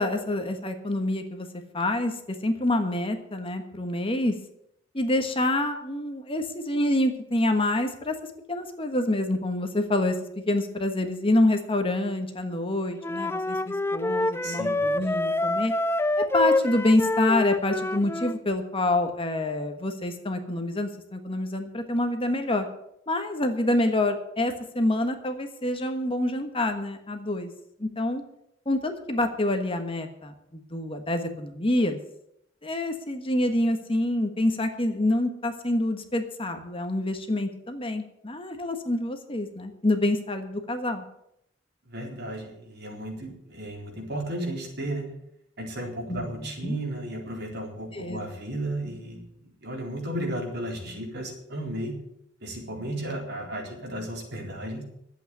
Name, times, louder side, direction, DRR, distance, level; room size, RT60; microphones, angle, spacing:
voice 1, 0.0-1.5 1.7-2.1 2.4-4.3 4.9-8.1 8.5-10.2 10.5-15.7 16.3-22.7 23.1-27.5 27.8-28.2 28.6-32.0 32.6-41.0 46.1-46.8 47.9-48.2, left 1 dB, 30° left, 6 dB, 1.4 m, -27 dB
Wind instrument woodwind instrument, 13.0-18.4, left 2 dB, 15° left, 0.4 m, -26 dB
voice 2, 14.4-14.8 41.9-45.1 45.6-49.2 49.6-52.0 52.4-54.8, right 1 dB, 60° right, 0 dB, 4.0 m, -34 dB
11.5 x 8.3 x 9.1 m, 0.77 s
head